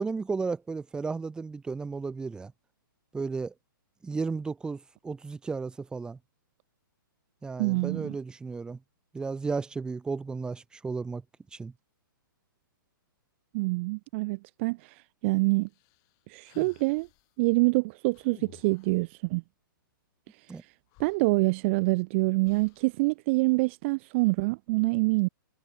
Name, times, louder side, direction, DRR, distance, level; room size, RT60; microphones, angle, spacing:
voice 1, 0.0-2.5 3.1-3.5 4.0-6.2 7.4-8.8 9.1-11.2 11.5-11.7 20.5-20.6, right 4 dB, 5° right, 0.9 m, -34 dB
voice 2, 7.6-8.2 13.5-15.7 16.3-17.1 17.4-19.4 21.0-25.3, right 25 dB, 35° right, 0.5 m, -26 dB
sound 1, 15.7-17.3 18.1-19.1 20.6-20.7 20.9-21.9 22.4-23.0, left 28 dB, 30° left, 5.7 m, -55 dB
hypercardioid pair, 150°, 12 cm